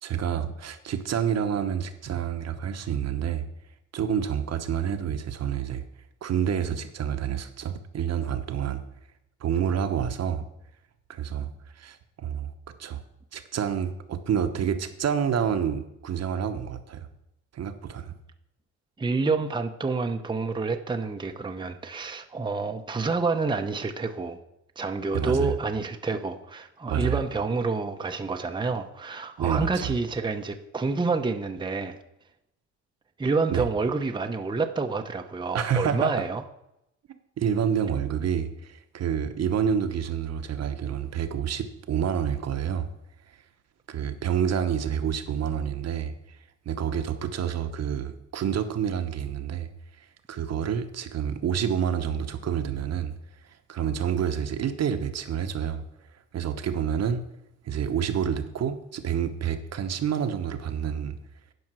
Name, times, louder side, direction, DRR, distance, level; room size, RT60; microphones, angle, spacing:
voice 1, 0.0-3.4 3.9-5.8 6.2-8.8 9.4-10.5 11.1-11.5 11.7-12.5 12.8-13.0 13.3-17.1 17.5-18.2 25.1-25.5 26.9-27.2 29.4-29.9 33.5-33.6 35.5-36.1 37.1-42.9 43.3-43.4 43.9-46.4 46.6-49.7 50.0-53.1 53.7-55.8 56.3-57.2 57.6-61.2, right 8 dB, 55° right, 8 dB, 1.0 m, -28 dB
voice 2, 19.0-24.4 24.8-32.0 33.2-36.4, right 4 dB, 15° right, 5 dB, 0.8 m, -28 dB
10.5 x 5.4 x 6.1 m, 0.83 s
cardioid pair, 90°, 30 cm